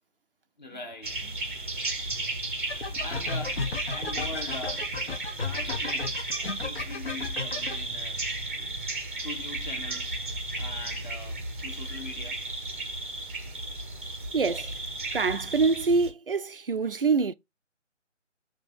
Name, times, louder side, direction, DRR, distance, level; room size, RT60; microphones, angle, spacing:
voice 1, 0.6-1.1 2.7-4.9 5.4-6.3 6.6-8.2 9.2-10.2 10.5-12.4, left 2 dB, 35° left, 1.7 m, -41 dB
sound 1, 1.0-16.1, right 2 dB, 10° right, 0.7 m, -34 dB
sound 2, 2.7-7.8, left 4 dB, 55° left, 1.2 m, -34 dB
voice 2, 14.3-14.7 15.1-17.3, right 4 dB, 50° right, 0.4 m, -25 dB
6.7 x 2.9 x 5.3 m
figure-of-eight pair, 155°, 37 cm